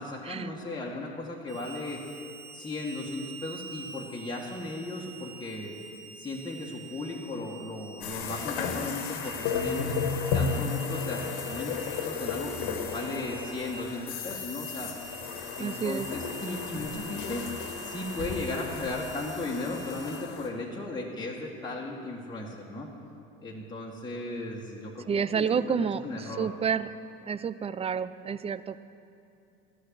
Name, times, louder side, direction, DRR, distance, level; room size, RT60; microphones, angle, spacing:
voice 1, 0.0-2.0 2.5-5.8 6.2-14.9 15.6-22.9 23.4-26.5, left 2 dB, 15° left, -3 dB, 1.8 m, -36 dB
Harmonica, 1.5-20.2, right 5 dB, 65° right, 1.8 m, -46 dB
sound 1, 8.0-20.5, left 5 dB, 70° left, 1.7 m, -34 dB
voice 2, 15.6-16.1 25.1-26.9 27.3-28.8, right 6 dB, 20° right, 15 dB, 0.4 m, -29 dB
12.5 x 6.5 x 9.5 m, 2.7 s
hypercardioid pair, 90°, 32 cm